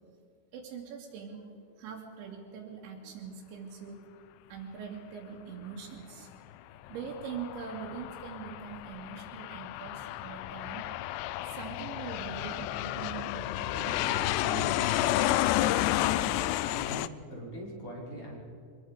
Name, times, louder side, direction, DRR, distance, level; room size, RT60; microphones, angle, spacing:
voice 1, 0.5-1.4 1.8-4.0 4.5-6.3 6.9-10.8 11.5-14.7, right 6 dB, 85° right, -3 dB, 4.7 m, -42 dB
Aircraft, 6.9-17.1, left 14 dB, 80° left, 2.6 m, -31 dB
voice 2, 15.6-16.3 16.6-18.4, equal, 30° left, -3 dB, 5.9 m, -42 dB
23.5 x 21.5 x 5.1 m, 2.5 s
omnidirectional pair, 5.1 m